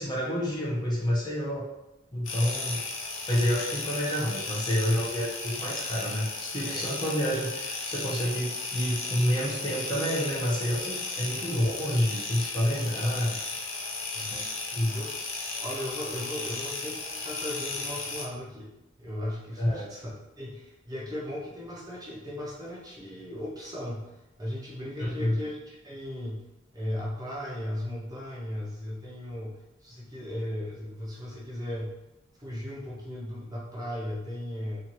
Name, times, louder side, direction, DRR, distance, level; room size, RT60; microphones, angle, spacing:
voice 1, 0.0-1.6 2.1-2.8 3.3-13.4 14.3-14.4 14.7-15.0 19.6-19.9 25.0-25.4, equal, 20° left, -5 dB, 0.7 m, -28 dB
sound 1, 2.2-18.3, left 3 dB, 75° left, 0.5 m, -35 dB
voice 2, 15.5-18.7 19.0-24.1 24.4-26.4 26.7-32.0 32.4-34.8, left 1 dB, 20° right, -5 dB, 0.5 m, -37 dB
2.7 x 2.4 x 2.9 m, 0.94 s
head